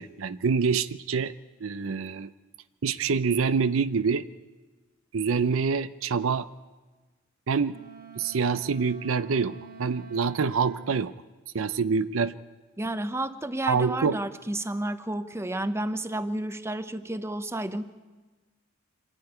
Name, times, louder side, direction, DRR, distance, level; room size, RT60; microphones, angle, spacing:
voice 1, 0.0-1.3 1.6-2.3 2.8-4.2 5.1-6.5 7.5-7.8 8.2-9.5 9.8-11.1 11.5-12.3 13.7-14.2, right 5 dB, 70° right, 14 dB, 0.6 m, -26 dB
Wind instrument woodwind instrument, 7.7-11.1, right 4 dB, 45° right, 1.5 m, -47 dB
voice 2, 12.8-17.9, right 1 dB, 15° right, 11 dB, 0.7 m, -31 dB
25.5 x 11.0 x 9.6 m, 1.3 s
head